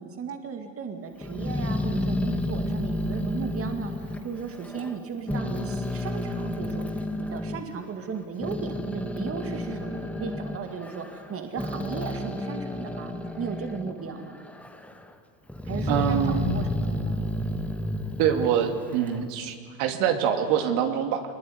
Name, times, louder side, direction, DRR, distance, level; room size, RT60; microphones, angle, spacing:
voice 1, 0.0-14.4 15.6-17.3, right 6 dB, 25° right, 6 dB, 2.3 m, -36 dB
Growling, 1.2-5.0 5.3-7.6 8.2-14.0 14.3-15.0 15.5-19.3, left 1 dB, 5° left, 1.3 m, -31 dB
voice 2, 15.9-16.5 18.2-21.2, right 8 dB, 65° right, 6 dB, 2.8 m, -25 dB
24.0 x 21.0 x 9.6 m, 2.2 s
supercardioid pair, 135°, 49 cm